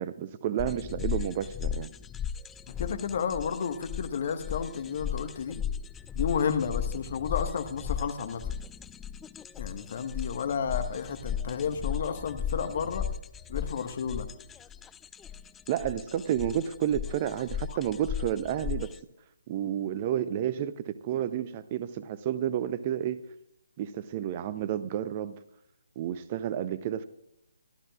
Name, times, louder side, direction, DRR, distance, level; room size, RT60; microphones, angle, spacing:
voice 1, 0.0-1.9 15.7-18.9 19.5-23.2 23.8-25.4 26.0-27.0, right 10 dB, 30° right, 15 dB, 0.7 m, -31 dB
sound 1, 0.6-19.0, left 8 dB, 10° left, 0.4 m, -36 dB
voice 2, 2.7-5.6 6.1-8.6 9.6-13.0 13.5-14.3 17.7-17.8, left 6 dB, 45° left, 8 dB, 1.4 m, -32 dB
23.0 x 13.0 x 2.4 m, 0.77 s
figure-of-eight pair, 140°, 0 cm